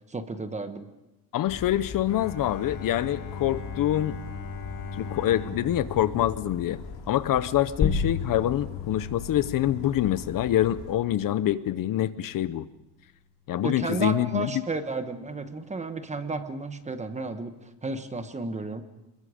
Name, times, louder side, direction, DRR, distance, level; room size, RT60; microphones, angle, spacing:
voice 1, 0.1-0.9 13.6-18.8, right 3 dB, 15° right, 9 dB, 1.1 m, -33 dB
voice 2, 1.3-4.2 5.0-6.8 7.1-12.7 13.5-14.5, left 12 dB, 55° left, 15 dB, 0.7 m, -25 dB
Bird vocalization bird call bird song, 1.5-11.0, left 5 dB, 85° left, 4.2 m, -41 dB
Bowed string instrument, 2.1-7.3, left 4 dB, 70° left, 6.4 m, -39 dB
sound 1, 7.8-12.9, left 6 dB, 35° left, 1.4 m, -33 dB
26.0 x 22.0 x 5.0 m, 0.96 s
cardioid pair, 175°, 41 cm